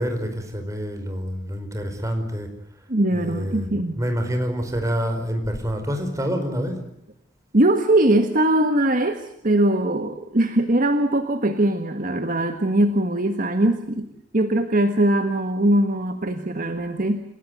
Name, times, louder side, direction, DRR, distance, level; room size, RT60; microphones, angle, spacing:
voice 1, 0.0-2.5 3.1-3.7 4.0-6.8, equal, 15° right, 5 dB, 4.8 m, -27 dB
voice 2, 2.9-4.0 7.5-14.1 14.3-17.2, right 1 dB, 45° right, 7 dB, 1.6 m, -21 dB
29.0 x 17.5 x 9.3 m, 0.75 s
head